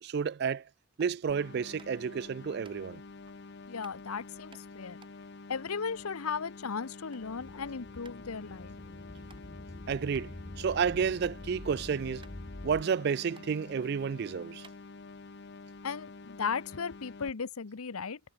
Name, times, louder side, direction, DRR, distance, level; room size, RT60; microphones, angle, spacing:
voice 1, 0.0-0.6 1.0-3.0 9.9-10.3 10.6-12.2 12.6-14.7, right 6 dB, 50° right, 0.3 m, -31 dB
sound 1, 1.0-1.2 1.8-2.1 2.6-2.8 3.8-4.0 4.5-6.6 6.9-7.3 7.6-7.7 8.0-8.2 8.7-8.8 9.3-9.4 10.1-10.3 10.7-11.7 11.9-12.0 12.2-13.0 13.3-13.5 14.1-14.2 14.6-15.3, right 4 dB, 25° right, 2.1 m, -58 dB
sound 2, 1.3-17.3, left 3 dB, 50° left, 0.7 m, -48 dB
voice 2, 3.7-5.0 5.5-8.8 15.8-18.2, left 5 dB, 85° left, 0.8 m, -36 dB
sound 3, 7.2-12.8, left 1 dB, 15° left, 0.4 m, -46 dB
head